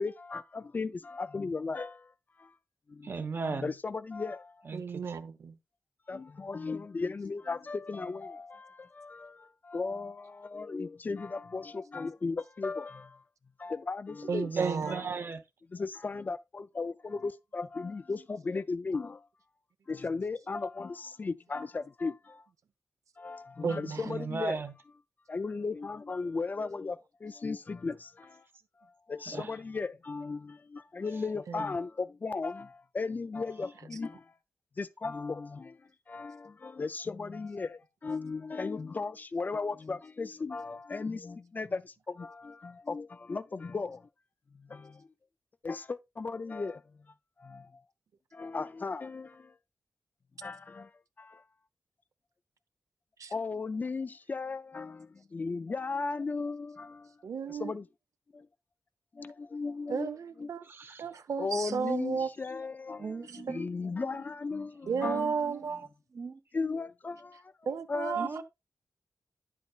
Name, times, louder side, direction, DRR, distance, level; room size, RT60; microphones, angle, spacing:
voice 1, 0.0-2.1 2.9-3.1 3.4-4.7 6.1-13.2 13.6-14.5 14.9-15.0 15.7-19.3 19.9-22.4 23.2-24.6 25.3-28.5 28.8-34.4 34.8-44.1 44.5-45.1 45.6-47.1 47.4-47.8 48.3-49.6 50.4-50.9 51.2-51.4 53.3-57.2 57.5-57.9 58.3-58.5 59.1-60.1 60.4-60.5 61.4-65.5 66.5-68.4, left 4 dB, 30° left, 0.4 m, -36 dB
voice 2, 3.0-3.7 4.6-5.2 14.6-15.4 24.0-24.7 29.3-29.5 60.6-61.1 63.0-64.2 64.8-65.7 66.1-66.4 68.2-68.4, right 4 dB, 40° right, 1.0 m, -37 dB
voice 3, 4.7-5.6 14.3-14.9 23.6-24.0 31.5-31.6 53.2-53.3 57.2-57.7 59.9-60.6 61.0-62.3 64.9-65.9 67.7-68.4, right 6 dB, 75° right, 0.8 m, -33 dB
10.5 x 8.2 x 2.3 m
wide cardioid pair, 175°, 6 cm